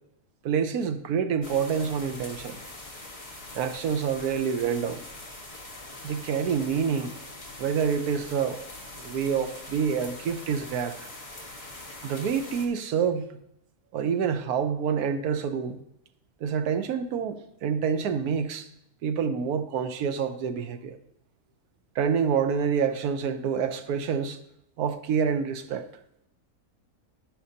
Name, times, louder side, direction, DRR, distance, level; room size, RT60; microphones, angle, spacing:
voice 1, 0.4-2.6 3.5-5.0 6.0-7.1 7.6-8.6 9.0-11.0 12.0-13.2 13.9-15.8 16.4-18.7 19.0-21.0 21.9-24.4 24.8-25.9, right 7 dB, 80° right, 1.2 m, -27 dB
sound 1, 1.4-12.7, left 2 dB, 25° left, 1.3 m, -43 dB
11.5 x 8.9 x 2.8 m
omnidirectional pair, 1.6 m